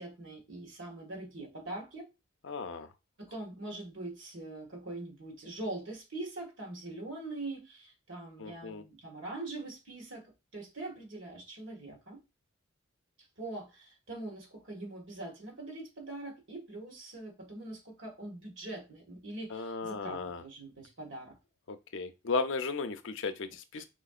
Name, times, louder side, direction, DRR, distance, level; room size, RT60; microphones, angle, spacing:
voice 1, 0.0-2.1 3.2-10.2 10.5-12.2 13.4-21.4 23.7-23.9, right 2 dB, 65° right, 1.8 m, -43 dB
voice 2, 2.4-2.9 8.4-8.8 19.5-20.4 21.7-23.8, left 4 dB, 60° left, 0.5 m, -35 dB
4.9 x 3.8 x 2.4 m
head